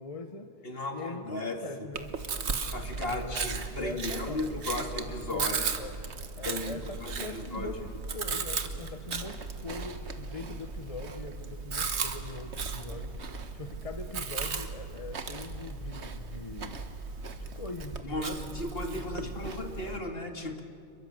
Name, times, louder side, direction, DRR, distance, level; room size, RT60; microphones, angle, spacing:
voice 1, 0.0-0.5 0.9-2.2 2.9-4.4 5.3-5.9 6.4-17.1 17.5-19.4 19.8-20.0, left 3 dB, 35° left, 7 dB, 1.1 m, -42 dB
voice 2, 0.6-1.9 2.7-3.5 3.8-5.7 6.4-7.7 18.0-20.6, left 2 dB, 60° left, 4 dB, 2.5 m, -35 dB
Chewing mastication, 1.9-20.0, right 4 dB, 80° right, 1.6 m, -36 dB
28.5 x 22.5 x 7.8 m, 2.3 s
omnidirectional pair, 1.1 m